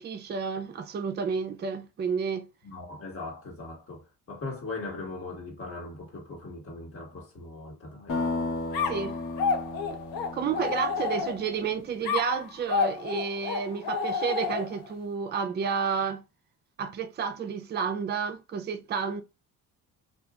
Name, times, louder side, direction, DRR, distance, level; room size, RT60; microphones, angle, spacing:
voice 1, 0.0-2.5 8.9-9.2 9.9-10.0 10.3-16.2 16.8-19.2, right 6 dB, 30° right, 0.5 m, -31 dB
voice 2, 2.6-8.2, left 3 dB, 40° left, 1.4 m, -39 dB
sound 1, 8.1-11.9, left 2 dB, 55° left, 1.2 m, -34 dB
sound 2, 8.7-11.6 12.0-14.9, left 5 dB, 80° left, 0.6 m, -30 dB
2.8 x 2.4 x 2.3 m
cardioid pair, 95°, 34 cm